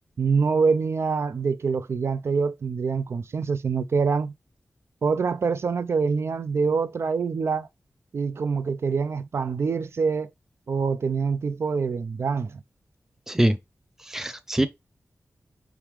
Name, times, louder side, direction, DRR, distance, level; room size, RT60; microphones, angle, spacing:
voice 1, 0.2-4.3 5.0-7.7 8.1-10.3 10.7-12.6, right 5 dB, 60° right, 0.4 m, -25 dB
voice 2, 13.3-13.6 14.0-14.7, right 1 dB, 10° right, 0.5 m, -23 dB
4.8 x 3.5 x 3.0 m
wide cardioid pair, 130°, 5 cm